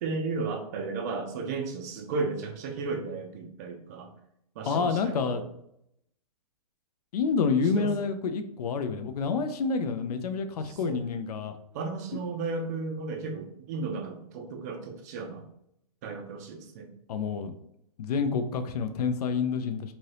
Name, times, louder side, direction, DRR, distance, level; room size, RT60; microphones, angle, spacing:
voice 1, 0.0-4.1 4.6-5.5 7.8-8.1 10.6-11.0 11.7-15.5 16.0-16.9, right 4 dB, 25° right, 4 dB, 0.4 m, -34 dB
voice 2, 4.7-5.4 7.1-11.6 17.1-17.5 18.0-19.9, left 5 dB, 75° left, 8 dB, 0.4 m, -28 dB
2.8 x 2.6 x 3.2 m, 0.76 s
hypercardioid pair, 150°, 20 cm